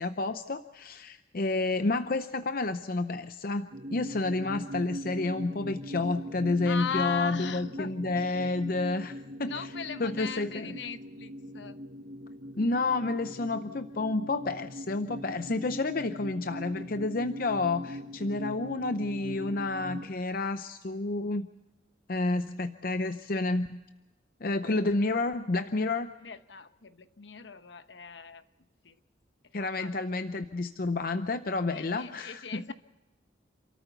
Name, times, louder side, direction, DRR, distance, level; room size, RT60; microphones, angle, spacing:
voice 1, 0.0-9.5 10.0-10.7 12.5-21.5 22.1-23.8 24.4-26.1 29.5-32.6, left 3 dB, 50° left, 9 dB, 0.6 m, -30 dB
sound 1, 3.7-20.1, equal, 50° right, 1.6 m, -41 dB
voice 2, 6.6-8.5 9.4-11.8 26.2-28.5 28.8-29.0 29.4-29.9 31.7-32.7, left 6 dB, 70° left, 11 dB, 1.0 m, -39 dB
28.0 x 13.5 x 6.9 m, 1.1 s
head